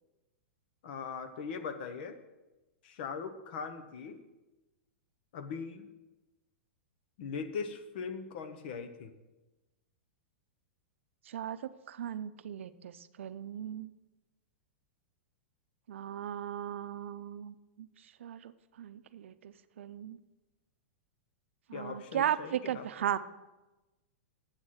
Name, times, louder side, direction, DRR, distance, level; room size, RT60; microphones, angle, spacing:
voice 1, 0.8-2.2 2.8-4.2 5.3-5.9 7.2-9.1 21.7-22.9, left 5 dB, 55° left, 10 dB, 1.0 m, -40 dB
voice 2, 11.3-13.9 15.9-17.9 18.2-20.2 21.7-23.2, right 10 dB, 85° right, 13 dB, 0.5 m, -37 dB
8.0 x 6.4 x 7.6 m, 1.1 s
supercardioid pair, 160°, 7 cm